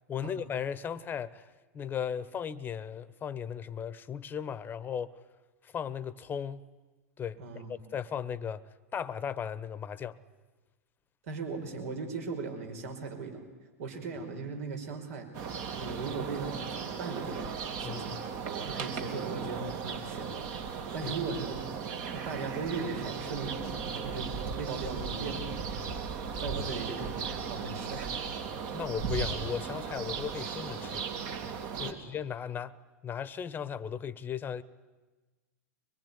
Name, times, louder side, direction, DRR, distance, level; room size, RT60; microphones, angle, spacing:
voice 1, 0.1-1.5 1.7-5.2 5.6-6.6 7.2-7.4 7.7-8.6 8.9-10.2 17.8-18.2 21.0-21.1 28.7-31.0 31.8-32.8 33.0-34.6, left 8 dB, 25° left, 1.1 m, -36 dB
voice 2, 7.4-7.8 11.3-13.5 13.8-15.3 15.7-18.2 18.5-20.3 20.9-21.6 22.1-25.7 26.4-28.1 31.7-32.0, right 4 dB, 65° right, 5.1 m, -38 dB
sound 1, 15.3-31.9, right 6 dB, 50° right, 3.0 m, -36 dB
24.0 x 21.0 x 9.8 m
hypercardioid pair, 105°, 8 cm